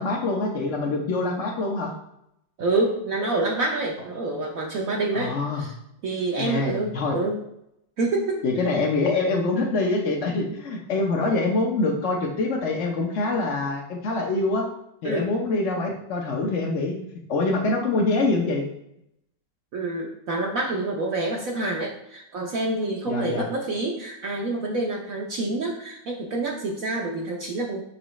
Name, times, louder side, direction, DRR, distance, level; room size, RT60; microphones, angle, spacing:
voice 1, 0.0-1.9 5.1-5.7 6.4-7.2 8.4-14.6 15.0-17.0 17.3-18.6 23.1-23.4, left 3 dB, 55° left, -2 dB, 0.9 m, -25 dB
voice 2, 2.6-5.7 6.0-7.4 8.0-8.4 15.0-15.3 19.7-27.8, right 2 dB, 60° right, -1 dB, 1.0 m, -27 dB
6.3 x 4.9 x 3.1 m, 0.78 s
omnidirectional pair, 1.9 m